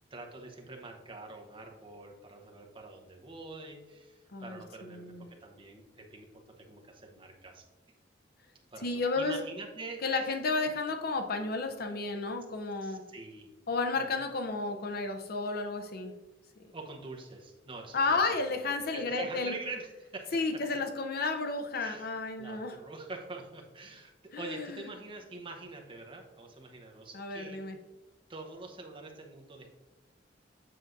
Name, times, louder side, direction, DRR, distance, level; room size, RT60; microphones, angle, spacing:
voice 1, 0.1-7.6 8.7-10.3 12.8-13.5 14.0-14.2 16.7-18.3 18.6-20.6 21.8-22.1 22.4-27.6 28.3-29.7, right 3 dB, 30° right, 2 dB, 0.9 m, -45 dB
voice 2, 4.3-5.3 8.8-9.4 10.0-13.0 13.7-16.1 17.9-19.5 20.3-22.8 24.3-24.9 27.1-27.8, left 3 dB, 55° left, 6 dB, 0.6 m, -32 dB
7.6 x 6.2 x 2.6 m, 1.1 s
head